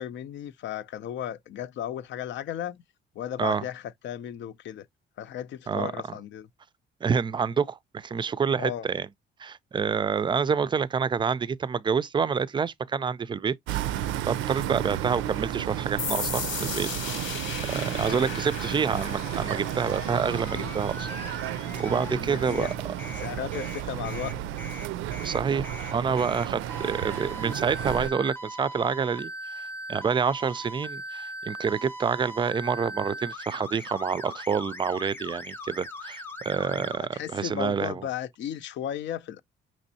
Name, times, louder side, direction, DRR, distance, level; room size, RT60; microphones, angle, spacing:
voice 1, 0.0-2.8 3.2-4.9 5.2-6.5 8.6-8.9 18.0-18.2 20.5-20.8 21.7-22.7 23.2-24.3 36.6-39.4, left 10 dB, 70° left, 0.5 m, -35 dB
voice 2, 7.0-9.1 9.4-13.8 14.3-17.3 17.6-21.4 21.8-22.9 25.2-38.0, right 6 dB, 25° right, 0.3 m, -28 dB
sound 1, 13.7-28.1, right 11 dB, 90° right, 0.4 m, -33 dB
sound 2, 16.0-23.4, left 6 dB, 85° left, 1.4 m, -37 dB
sound 3, 19.8-22.2 22.5-37.0, equal, 10° left, 0.6 m, -40 dB
5.2 x 3.0 x 2.7 m
cardioid pair, 90°, 20 cm